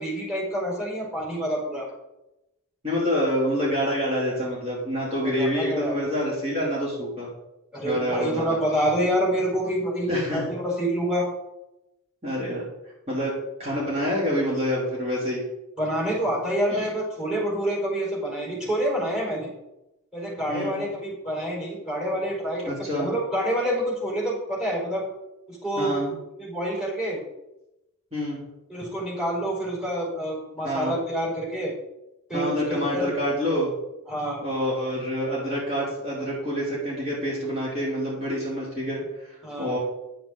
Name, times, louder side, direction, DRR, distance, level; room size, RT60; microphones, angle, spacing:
voice 1, 0.0-1.9 5.2-6.0 7.7-11.3 15.8-19.5 20.1-25.0 25.5-25.9 26.4-27.2 28.7-31.7 32.3-33.1 34.1-34.4 39.4-39.7, equal, 5° right, -5 dB, 4.4 m, -27 dB
voice 2, 2.8-7.3 7.8-8.5 10.1-10.4 12.2-12.6 13.1-15.4 16.7-16.9 20.5-20.8 22.7-23.1 25.8-26.1 28.1-28.4 30.6-31.0 32.3-33.7 34.4-39.8, equal, 30° right, -7 dB, 3.3 m, -27 dB
10.5 x 8.7 x 4.0 m, 0.92 s
head